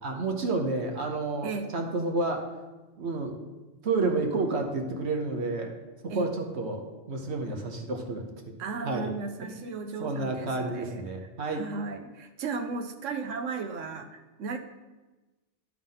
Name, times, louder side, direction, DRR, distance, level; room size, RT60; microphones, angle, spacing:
voice 1, 0.0-2.4 3.0-3.4 3.8-5.7 6.0-8.2 8.8-9.1 9.4-9.7 10.0-11.6, right 3 dB, 65° right, 3 dB, 1.2 m, -30 dB
voice 2, 1.4-1.7 6.1-6.3 8.6-11.1 11.5-14.6, right 4 dB, 85° right, 7 dB, 1.1 m, -35 dB
10.5 x 3.6 x 5.5 m, 1.1 s
omnidirectional pair, 1.3 m